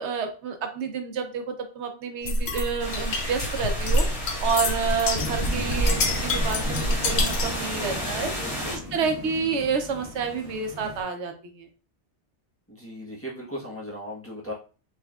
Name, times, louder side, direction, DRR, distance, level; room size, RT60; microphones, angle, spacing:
voice 1, 0.0-4.0 4.4-8.3 8.9-11.7, right 5 dB, 75° right, 5 dB, 0.9 m, -29 dB
sound 1, 2.3-7.6, left 1 dB, 65° left, 0.9 m, -26 dB
sound 2, 2.8-8.8, equal, 30° left, 1.4 m, -32 dB
sound 3, 5.1-11.0, left 2 dB, 10° right, 1.3 m, -38 dB
voice 2, 7.7-8.8 12.7-14.5, equal, 15° left, -4 dB, 0.8 m, -38 dB
4.1 x 3.2 x 2.3 m, 0.36 s
omnidirectional pair, 1.2 m